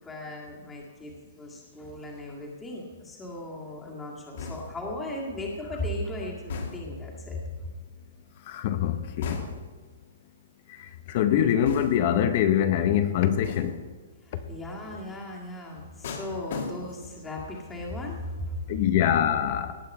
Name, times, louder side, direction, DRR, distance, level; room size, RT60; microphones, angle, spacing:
voice 1, 0.0-7.4 14.2-18.6, left 1 dB, 10° left, -2 dB, 1.9 m, -37 dB
sound 1, 4.4-4.9 6.5-7.1 9.2-9.8 11.7-12.2 13.4-13.9 16.0-17.2 17.5-17.9, left 4 dB, 50° left, 2.0 m, -37 dB
voice 2, 8.5-9.4 10.7-13.8 18.7-19.8, left 10 dB, 35° left, 10 dB, 0.7 m, -24 dB
18.0 x 8.8 x 5.4 m, 1.4 s
hypercardioid pair, 175°, 0 cm